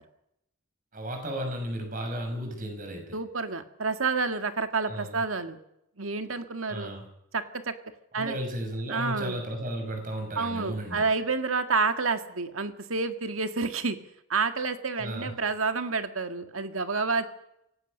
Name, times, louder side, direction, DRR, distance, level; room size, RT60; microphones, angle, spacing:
voice 1, 0.9-3.2 4.9-5.2 6.7-7.1 8.1-11.0 15.0-15.3, right 1 dB, 40° right, 5 dB, 6.2 m, -34 dB
voice 2, 3.1-5.6 6.0-6.9 7.3-7.7 8.1-8.4 8.9-9.4 10.4-14.0 14.3-17.2, right 4 dB, 85° right, 8 dB, 1.9 m, -29 dB
25.0 x 18.0 x 6.6 m, 0.80 s
head